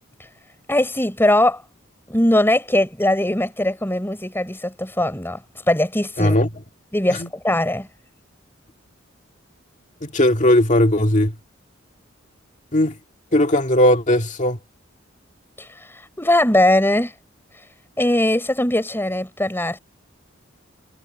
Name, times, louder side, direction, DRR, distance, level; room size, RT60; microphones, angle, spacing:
voice 1, 0.7-1.6 2.1-5.4 5.7-6.4 6.9-7.9 15.6-15.7 16.2-17.1 18.0-19.8, left 1 dB, 10° left, 5.8 m, -20 dB
voice 2, 6.2-6.5 7.2-7.3 10.0-11.3 12.7-13.0 13.3-14.6, left 1 dB, 40° left, 2.0 m, -17 dB
head